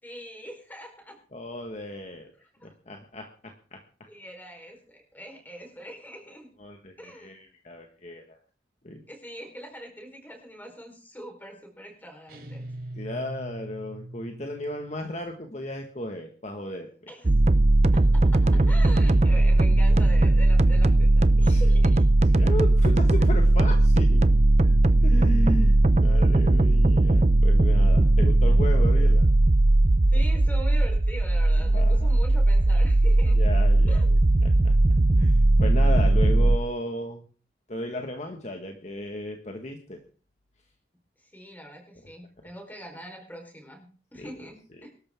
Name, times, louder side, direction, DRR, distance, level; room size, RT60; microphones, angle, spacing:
voice 1, 0.0-1.2 2.4-2.7 4.1-6.5 7.0-7.3 9.1-12.7 17.1-17.3 17.9-22.0 30.1-33.4 33.9-34.1 41.2-44.9, equal, 10° left, 2 dB, 4.3 m, -43 dB
voice 2, 1.3-2.3 2.6-3.8 6.6-8.4 8.8-9.0 12.9-16.9 18.5-18.8 21.5-21.6 22.3-24.3 24.6-24.7 25.0-29.3 31.6-32.1 33.3-34.7 35.2-37.3 37.7-40.0 44.2-44.3, left 1 dB, 40° left, 3 dB, 1.7 m, -35 dB
sound 1, 12.3-14.9, right 1 dB, 55° right, 3.8 m, -40 dB
sound 2, 17.2-36.6, right 2 dB, 40° right, 0.6 m, -19 dB
23.0 x 13.5 x 3.7 m, 0.40 s
head